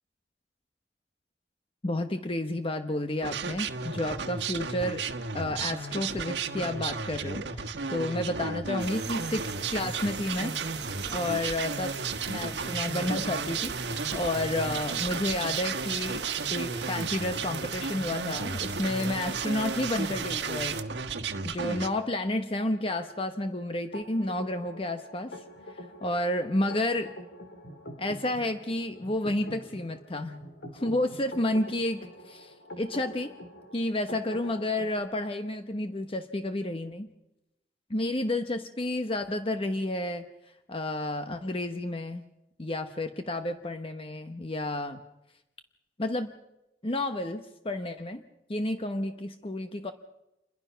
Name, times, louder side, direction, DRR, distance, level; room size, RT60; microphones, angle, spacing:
voice 1, 1.8-5.0 5.3-10.5 11.1-11.9 12.3-16.2 16.5-20.8 21.4-25.4 25.7-27.1 28.0-30.4 30.7-33.3 33.7-37.1 37.9-40.2 40.7-42.2 42.6-45.0 46.0-46.3 46.8-48.2 48.5-49.9, left 1 dB, 30° left, 7 dB, 1.0 m, -31 dB
sound 1, 3.2-21.9, right 4 dB, 85° right, 1.3 m, -34 dB
sound 2, 8.8-20.8, right 6 dB, 70° right, 1.4 m, -38 dB
sound 3, 23.9-35.0, left 1 dB, 65° left, 3.7 m, -45 dB
28.0 x 22.0 x 5.8 m, 0.90 s
head